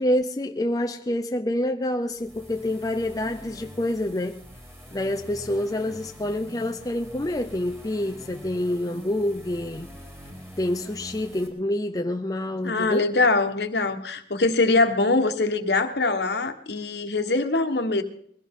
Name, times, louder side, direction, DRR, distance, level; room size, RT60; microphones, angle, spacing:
voice 1, 0.0-4.4 4.9-10.0 10.6-13.1, left 1 dB, 20° left, 0.5 m, -27 dB
sound 1, 2.1-11.5, equal, 15° right, 4.4 m, -44 dB
voice 2, 12.6-18.0, left 3 dB, 65° left, 1.3 m, -23 dB
22.0 x 15.5 x 3.7 m
head